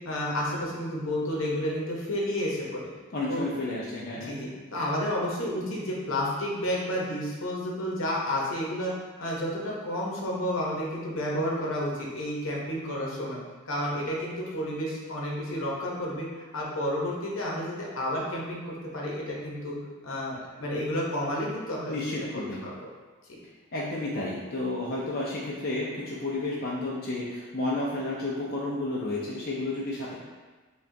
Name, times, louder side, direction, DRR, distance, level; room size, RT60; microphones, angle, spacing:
voice 1, 0.0-2.9 3.3-3.5 4.2-8.9 9.2-13.4 13.7-16.3 16.5-19.8 20.0-22.0 22.6-22.7 23.3-23.4, equal, 70° left, -3 dB, 0.8 m, -31 dB
voice 2, 3.1-4.3 21.9-22.6 23.7-30.2, left 2 dB, 45° left, -5 dB, 0.4 m, -31 dB
4.7 x 2.2 x 2.6 m, 1.3 s
head